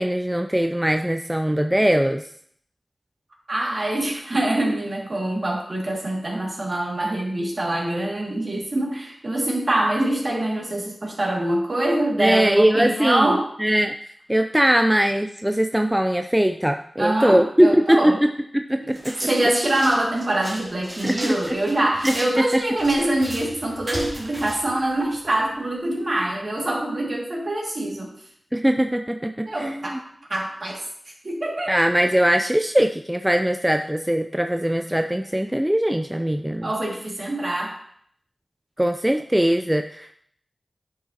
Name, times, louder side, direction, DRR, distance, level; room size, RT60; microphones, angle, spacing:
voice 1, 0.0-2.2 12.2-13.3 13.6-18.3 18.5-19.3 21.0-21.6 22.0-22.6 28.5-30.0 31.7-36.7 38.8-40.2, equal, 10° right, 6 dB, 0.4 m, -21 dB
voice 2, 3.5-13.4 17.0-18.2 18.8-18.9 19.3-28.1 29.5-30.0 30.3-30.8 31.2-31.8 36.6-37.7, right 1 dB, 50° right, -2 dB, 2.2 m, -24 dB
sound 1, 18.9-25.5, right 1 dB, 25° right, 2.2 m, -36 dB
9.8 x 5.6 x 2.9 m, 0.64 s
wide cardioid pair, 60°, 0 cm